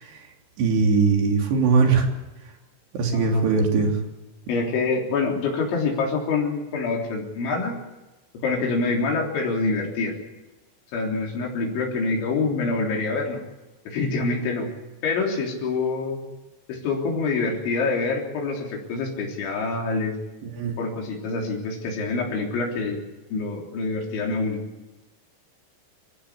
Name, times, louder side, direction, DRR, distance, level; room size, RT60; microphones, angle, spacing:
voice 1, 0.0-2.1 2.4-2.5 2.9-4.0 20.4-20.8, right 4 dB, 65° right, 2 dB, 5.2 m, -21 dB
voice 2, 4.5-7.8 8.4-10.1 10.9-13.4 13.9-14.7 15.0-16.2 16.7-20.2 20.8-23.0 23.3-24.6, left 3 dB, 85° left, -1 dB, 5.9 m, -26 dB
27.0 x 15.5 x 8.4 m, 1.1 s
omnidirectional pair, 5.3 m